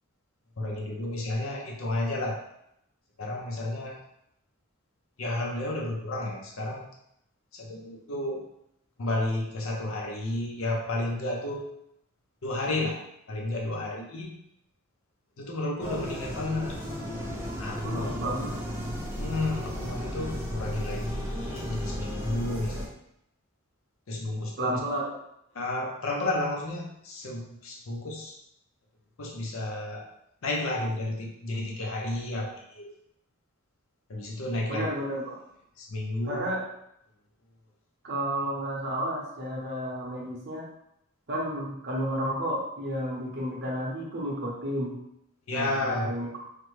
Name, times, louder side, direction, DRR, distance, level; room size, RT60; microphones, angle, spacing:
voice 1, 0.6-2.4 3.2-4.0 5.2-6.9 7.5-8.4 9.0-11.8 12.4-13.0 13.3-14.3 15.4-16.8 17.6-18.1 19.2-22.9 24.1-24.8 25.5-28.4 29.2-30.1 30.4-32.9 34.1-34.9 35.8-36.5 45.5-46.1, left 2 dB, 70° left, 0 dB, 0.6 m, -32 dB
sound 1, 15.8-22.9, equal, 10° right, 0.4 m, -34 dB
voice 2, 17.8-18.7 24.6-25.0 34.7-35.4 36.3-36.6 38.0-40.7 41.3-45.0 45.5-46.3, right 1 dB, 50° right, -3 dB, 0.8 m, -31 dB
3.3 x 2.1 x 3.1 m, 0.76 s
head